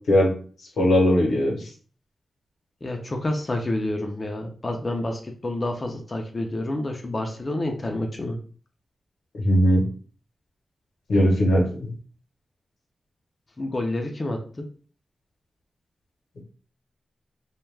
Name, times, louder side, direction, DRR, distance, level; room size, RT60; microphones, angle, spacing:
voice 1, 0.8-1.7 9.3-9.8 11.1-11.9, equal, 90° left, 0 dB, 0.8 m, -19 dB
voice 2, 2.8-8.4 13.6-14.6, left 1 dB, 35° left, 3 dB, 0.5 m, -29 dB
2.2 x 2.2 x 3.2 m, 0.42 s
cardioid pair, 70°, 0 cm